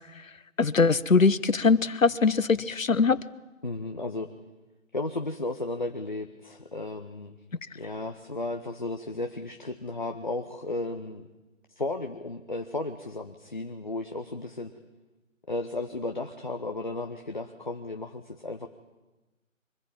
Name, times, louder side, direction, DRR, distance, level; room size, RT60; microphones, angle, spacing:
voice 1, 0.6-3.2, left 4 dB, 75° left, 0.9 m, -22 dB
voice 2, 3.6-4.3 4.9-7.4 7.7-11.2 11.8-14.7 15.5-18.7, left 2 dB, 35° left, 0.8 m, -34 dB
23.0 x 15.0 x 8.8 m
figure-of-eight pair, 160°, 40 cm